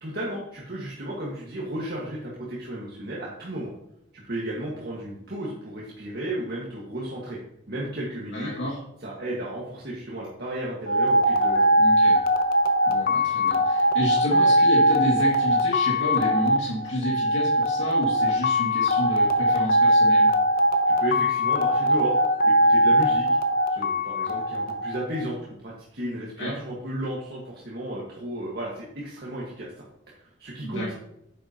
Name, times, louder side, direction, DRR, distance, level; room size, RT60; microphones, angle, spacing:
voice 1, 0.0-3.7 4.1-7.4 7.7-8.5 9.0-11.8 20.9-22.2 22.4-23.3 23.7-29.7 30.1-30.9, right 1 dB, 55° right, -5 dB, 1.7 m, -34 dB
voice 2, 8.3-8.7 11.8-12.2 12.9-20.3 26.4-26.5 30.6-30.9, equal, 80° left, -5 dB, 2.2 m, -30 dB
sound 1, 10.9-25.3, equal, 50° left, 0.8 m, -21 dB
9.9 x 7.8 x 2.9 m, 0.80 s
head